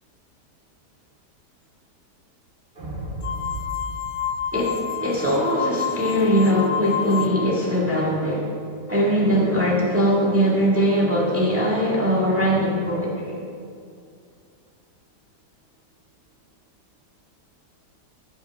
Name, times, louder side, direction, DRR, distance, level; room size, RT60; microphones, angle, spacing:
sound 1, 2.8-5.2, right 1 dB, 35° right, 2.4 m, -35 dB
sound 2, 3.2-7.6, left 8 dB, 70° left, 1.0 m, -29 dB
voice 1, 4.5-8.5 8.9-13.4, equal, 10° right, -4 dB, 1.6 m, -21 dB
16.0 x 8.4 x 3.5 m, 2.3 s
omnidirectional pair, 1.8 m